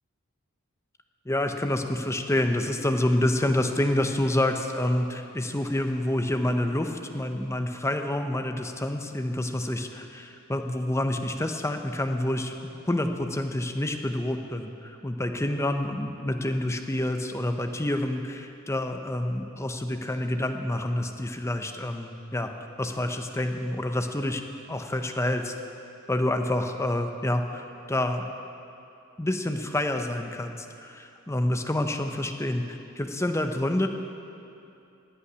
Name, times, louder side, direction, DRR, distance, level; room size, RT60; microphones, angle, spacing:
voice 1, 1.3-12.6 12.8-22.5 22.8-24.4 24.7-25.5 26.1-28.3 29.2-33.9, left 1 dB, 15° left, 6 dB, 0.7 m, -28 dB
15.5 x 5.8 x 9.8 m, 2.7 s
head